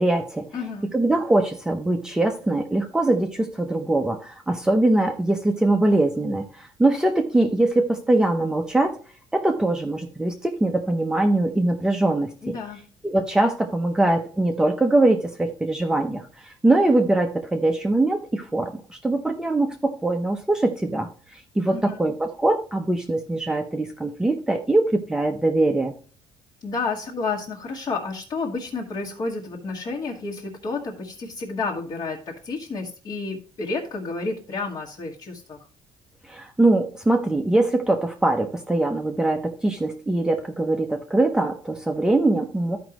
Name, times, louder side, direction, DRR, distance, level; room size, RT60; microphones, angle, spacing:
voice 1, 0.0-0.4 0.9-8.9 9.3-12.5 13.0-25.9 36.3-42.8, right 2 dB, 5° right, 3 dB, 0.7 m, -22 dB
voice 2, 0.5-0.9 12.4-12.8 21.7-22.1 26.6-35.6, left 4 dB, 45° left, -3 dB, 1.5 m, -30 dB
13.5 x 5.1 x 3.0 m, 0.40 s
cardioid pair, 150°, 10 cm